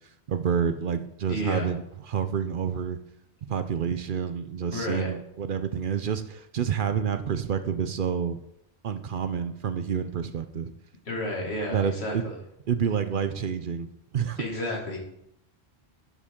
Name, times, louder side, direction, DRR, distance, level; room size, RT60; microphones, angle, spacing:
voice 1, 0.3-1.8 2.1-3.0 3.5-8.4 8.8-10.7 11.7-12.3 12.7-13.9 14.1-14.4, right 7 dB, 60° right, 10 dB, 0.7 m, -28 dB
voice 2, 1.3-1.7 4.7-5.1 11.0-12.3 14.4-15.0, left 1 dB, 75° left, -1 dB, 2.4 m, -31 dB
10.5 x 7.4 x 3.7 m, 0.77 s
omnidirectional pair, 1.1 m